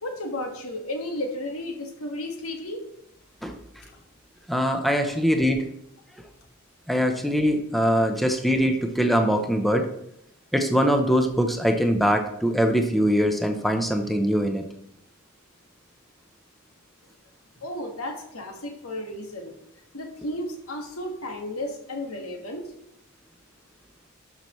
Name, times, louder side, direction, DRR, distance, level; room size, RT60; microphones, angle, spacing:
voice 1, 0.0-2.8 17.6-19.5 19.9-22.6, left 1 dB, 85° left, 3 dB, 1.7 m, -33 dB
voice 2, 4.5-5.6 6.9-9.9 10.5-14.6, equal, ahead, 4 dB, 0.7 m, -22 dB
12.0 x 5.9 x 3.1 m, 0.75 s
head